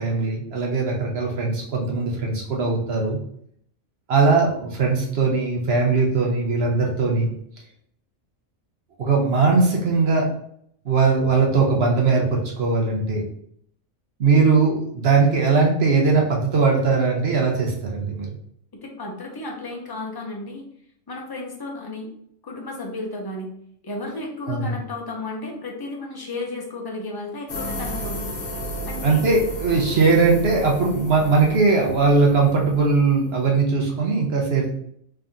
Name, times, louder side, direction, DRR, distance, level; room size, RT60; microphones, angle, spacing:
voice 1, 0.0-3.2 4.1-7.3 9.0-10.3 10.9-13.2 14.2-18.3 24.5-24.8 29.0-34.7, right 4 dB, 50° right, 0 dB, 1.0 m, -20 dB
voice 2, 18.8-20.6 21.1-22.1 22.4-23.5 23.8-28.3 28.8-29.2, left 2 dB, 25° left, 0 dB, 0.5 m, -33 dB
sound 1, 27.5-33.6, equal, 55° left, 1.0 m, -33 dB
3.4 x 2.8 x 3.6 m, 0.67 s
omnidirectional pair, 1.4 m